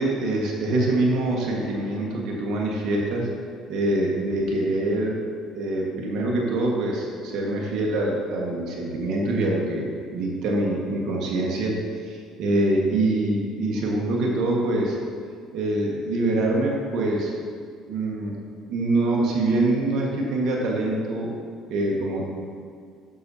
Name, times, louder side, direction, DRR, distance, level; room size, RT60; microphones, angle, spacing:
voice 1, 0.0-3.3 3.7-5.2 5.5-11.8 12.0-15.0 15.5-17.3 17.9-18.4 18.7-21.4 21.7-22.3, right 2 dB, 70° right, -2 dB, 1.5 m, -24 dB
11.0 x 6.8 x 2.8 m, 2.2 s
supercardioid pair, 80°, 0 cm